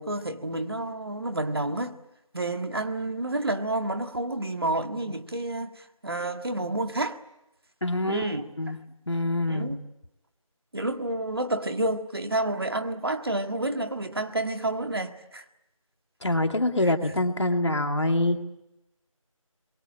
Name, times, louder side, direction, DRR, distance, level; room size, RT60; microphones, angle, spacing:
voice 1, 0.0-2.0 2.3-7.2 8.0-8.8 9.5-9.8 10.7-15.4 16.8-16.9, right 2 dB, 45° right, 1.8 m, -30 dB
voice 2, 7.8-8.3 8.6-8.8 9.1-9.7 16.2-18.4, left 1 dB, 55° left, 2.5 m, -25 dB
28.5 x 23.0 x 8.8 m
figure-of-eight pair, 170°, 18 cm